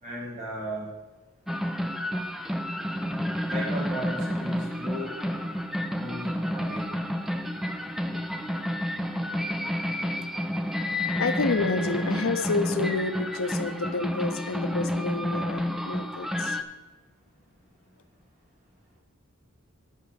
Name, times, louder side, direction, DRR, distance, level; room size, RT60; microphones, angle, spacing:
voice 1, 0.0-0.9 3.5-5.2 5.9-6.8, equal, 35° right, -5 dB, 3.2 m, -36 dB
sound 1, 1.5-16.6, left 1 dB, ahead, 0.4 m, -30 dB
voice 2, 11.2-16.6, left 3 dB, 80° left, 9 dB, 0.7 m, -29 dB
9.9 x 4.7 x 6.9 m, 1.2 s
head